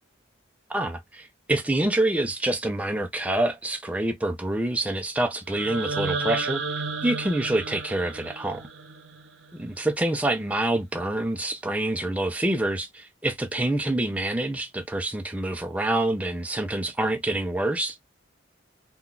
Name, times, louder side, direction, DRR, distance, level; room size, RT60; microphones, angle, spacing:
voice 1, 0.7-6.6 7.0-8.7 9.6-18.0, right 1 dB, 5° right, 0.4 m, -26 dB
sound 1, 5.5-9.5, right 4 dB, 65° right, 0.7 m, -32 dB
3.7 x 2.3 x 2.3 m
head